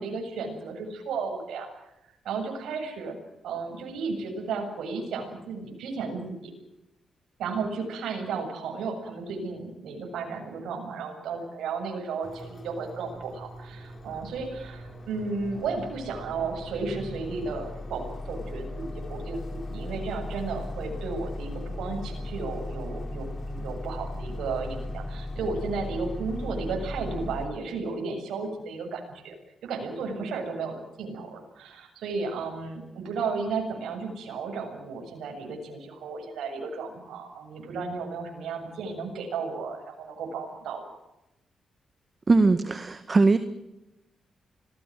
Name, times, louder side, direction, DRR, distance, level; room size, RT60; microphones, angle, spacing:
voice 1, 0.0-1.7 2.2-3.2 3.4-6.5 7.4-29.4 29.6-40.9, right 4 dB, 85° right, 3 dB, 7.3 m, -34 dB
sound 1, 12.2-27.5, left 1 dB, 45° left, 6.1 m, -37 dB
voice 2, 42.3-43.4, right 3 dB, 35° right, 11 dB, 1.8 m, -20 dB
26.5 x 20.5 x 7.8 m, 0.93 s
cardioid pair, 65°, 0 cm